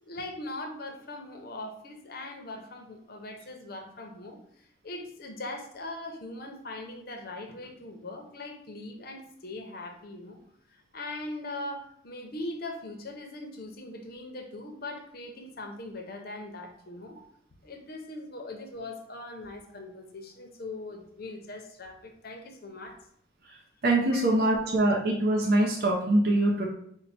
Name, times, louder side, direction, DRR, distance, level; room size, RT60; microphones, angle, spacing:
voice 1, 0.0-10.4 10.7-17.2 17.6-23.0 24.1-24.8, left 2 dB, 50° left, 4 dB, 0.7 m, -41 dB
voice 2, 23.8-26.7, right 1 dB, 50° right, -1 dB, 0.6 m, -23 dB
4.5 x 2.2 x 4.1 m, 0.69 s
head